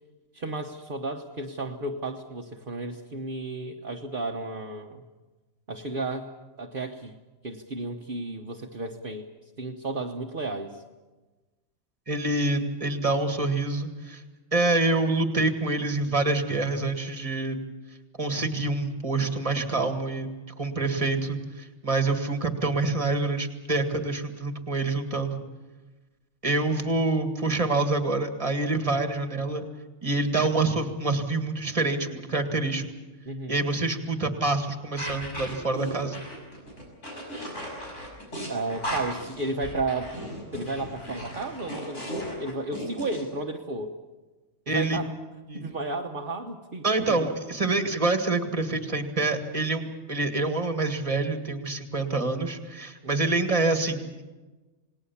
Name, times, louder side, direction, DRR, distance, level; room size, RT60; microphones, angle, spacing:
voice 1, 0.3-5.0 5.7-6.3 6.6-7.2 7.4-9.3 9.6-10.8 33.2-33.6 38.5-40.2 40.5-43.9 44.7-45.1 45.5-47.3 53.0-53.3, right 2 dB, 45° right, 2 dB, 1.3 m, -33 dB
voice 2, 12.1-14.2 14.5-17.6 18.2-20.3 20.6-25.4 26.4-29.7 30.0-32.9 33.5-36.2 44.7-45.0 45.5-45.7 46.8-54.2, right 2 dB, 25° right, 6 dB, 2.0 m, -26 dB
sound 1, 35.0-43.2, equal, 80° left, 6.7 m, -36 dB
28.0 x 19.5 x 7.2 m, 1.2 s
omnidirectional pair, 1.2 m